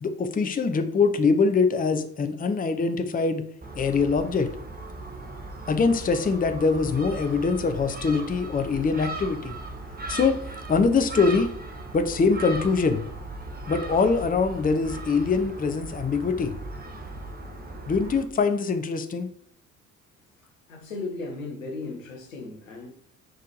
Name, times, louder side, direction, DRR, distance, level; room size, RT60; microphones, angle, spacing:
voice 1, 0.0-3.4 3.8-4.5 5.7-9.6 10.1-10.4 10.7-11.5 11.9-13.0 13.7-16.5 17.9-19.3, left 4 dB, 20° left, 0.8 m, -23 dB
Gull seagull, 3.6-18.2, right 2 dB, 25° right, 1.7 m, -38 dB
voice 2, 20.7-22.9, left 3 dB, 80° left, 1.5 m, -36 dB
10.0 x 4.7 x 3.2 m
figure-of-eight pair, 50°, 39 cm